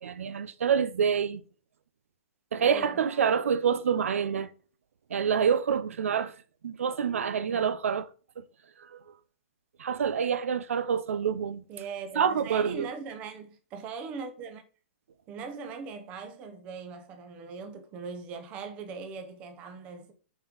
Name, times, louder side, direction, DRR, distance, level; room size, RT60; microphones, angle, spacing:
voice 1, 0.0-1.4 2.5-4.5 5.1-6.3 6.6-8.1 8.8-9.0 9.8-11.6 12.2-12.9, right 7 dB, 85° right, 0.7 m, -27 dB
voice 2, 2.6-3.2 7.5-7.7 11.7-14.6 15.3-20.1, right 5 dB, 15° right, 0.7 m, -40 dB
7.9 x 4.4 x 3.9 m
hypercardioid pair, 175°, 7 cm